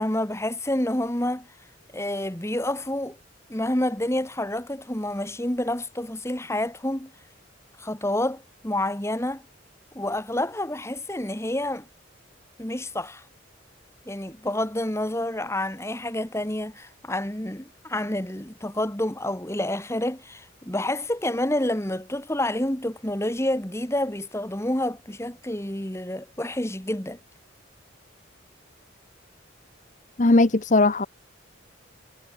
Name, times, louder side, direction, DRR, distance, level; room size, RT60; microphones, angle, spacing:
voice 1, 0.0-1.5 1.9-3.2 3.5-7.1 7.8-9.4 10.0-11.9 12.6-13.2 14.1-27.2, left 1 dB, 15° left, 1.9 m, -28 dB
voice 2, 30.2-31.1, left 2 dB, 40° left, 0.9 m, -18 dB
head